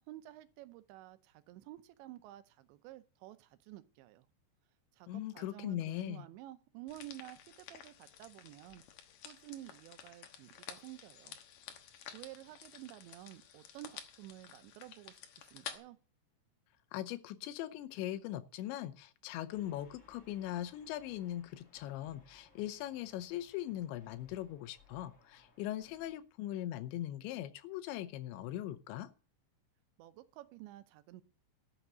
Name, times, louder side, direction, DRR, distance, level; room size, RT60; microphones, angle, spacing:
voice 1, 0.0-4.3 4.9-8.8 9.2-11.4 12.1-16.0 30.0-31.2, right 15 dB, 80° right, 3.0 m, -51 dB
voice 2, 5.1-6.3 16.9-29.1, left 13 dB, 80° left, 3.1 m, -40 dB
sound 1, 6.9-15.8, left 9 dB, 65° left, 2.3 m, -52 dB
sound 2, 19.5-26.1, left 3 dB, 50° left, 0.9 m, -66 dB
12.0 x 6.5 x 8.1 m
omnidirectional pair, 5.2 m